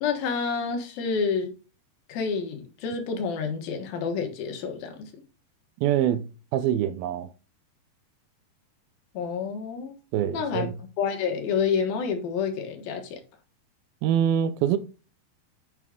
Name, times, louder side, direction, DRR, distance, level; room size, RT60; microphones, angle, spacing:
voice 1, 0.0-1.5 2.1-5.1 9.1-9.9 10.3-13.2, left 6 dB, 70° left, 3.2 m, -28 dB
voice 2, 5.8-6.3 6.5-7.3 10.1-10.7 14.0-14.8, right 10 dB, 80° right, 2.4 m, -24 dB
9.1 x 6.0 x 3.7 m
omnidirectional pair, 4.5 m